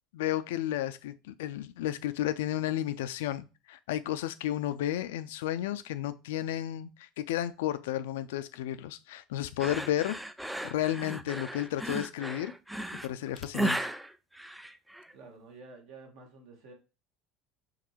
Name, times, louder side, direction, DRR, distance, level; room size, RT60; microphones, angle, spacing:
voice 1, 0.1-10.2 10.6-12.5 13.0-13.9, left 12 dB, 65° left, 0.3 m, -32 dB
sound 1, 9.6-15.1, right 1 dB, 5° right, 0.4 m, -35 dB
voice 2, 15.1-16.7, right 3 dB, 60° right, 1.3 m, -50 dB
4.8 x 2.9 x 3.0 m
figure-of-eight pair, 70°, 0 cm